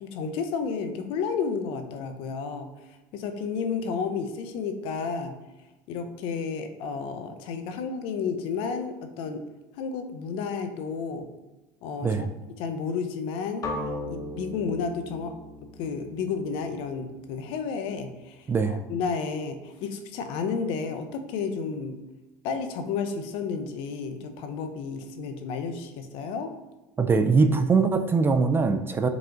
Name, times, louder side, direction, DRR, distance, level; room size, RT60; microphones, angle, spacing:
voice 1, 0.0-2.7 3.1-5.3 5.9-9.4 9.8-11.3 11.8-12.3 12.6-13.6 14.1-15.3 15.8-18.4 18.7-22.0 22.4-26.5, left 5 dB, 60° left, 7 dB, 0.6 m, -31 dB
sound 1, 13.6-17.6, left 1 dB, 35° left, 0.8 m, -37 dB
voice 2, 18.5-18.8 27.0-29.1, right 4 dB, 20° right, 8 dB, 0.3 m, -22 dB
4.9 x 2.4 x 3.8 m, 1.1 s
hypercardioid pair, 90°, 10 cm